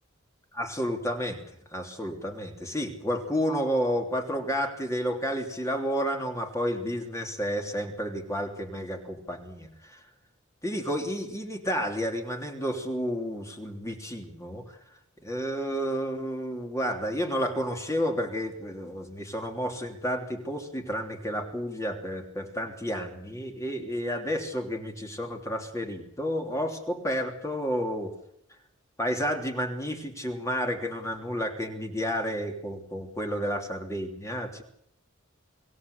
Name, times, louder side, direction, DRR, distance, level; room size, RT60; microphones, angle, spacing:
voice 1, 0.5-1.4 1.7-10.0 10.6-14.8 15.2-28.1 29.0-34.6, equal, 15° left, 3 dB, 3.1 m, -31 dB
25.0 x 17.0 x 8.4 m, 0.72 s
head